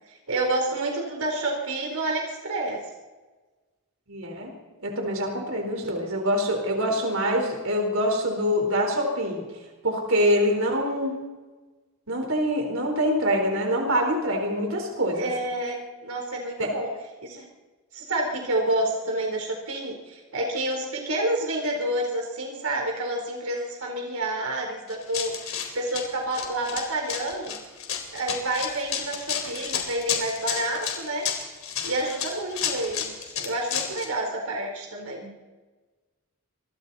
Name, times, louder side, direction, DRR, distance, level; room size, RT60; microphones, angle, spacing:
voice 1, 0.3-2.8 15.1-16.9 17.2-17.5 17.9-27.6 28.1-31.3 31.8-35.3, right 1 dB, 85° right, 1 dB, 4.1 m, -29 dB
voice 2, 4.1-4.5 4.8-9.4 9.8-11.2 12.1-15.3 16.6-16.7, equal, 65° right, 2 dB, 4.3 m, -25 dB
Run, 24.9-34.1, left 8 dB, 65° left, 4.0 m, -31 dB
27.5 x 23.0 x 4.2 m, 1.3 s
head